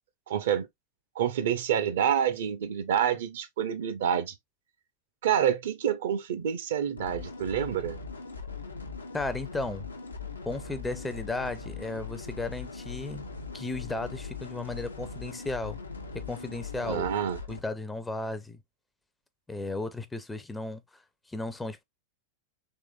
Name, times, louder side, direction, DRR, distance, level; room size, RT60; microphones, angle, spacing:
voice 1, 0.3-0.7 1.2-4.3 5.2-8.0 16.8-17.4, right 9 dB, 60° right, 0.6 m, -28 dB
sound 1, 7.0-17.6, left 4 dB, 80° left, 0.6 m, -40 dB
voice 2, 9.1-9.9 10.5-13.2 13.5-15.8 16.1-17.1 17.5-18.6 19.5-21.0 21.3-21.8, left 2 dB, 10° left, 0.5 m, -35 dB
3.6 x 3.1 x 2.3 m
figure-of-eight pair, 90°, 0 cm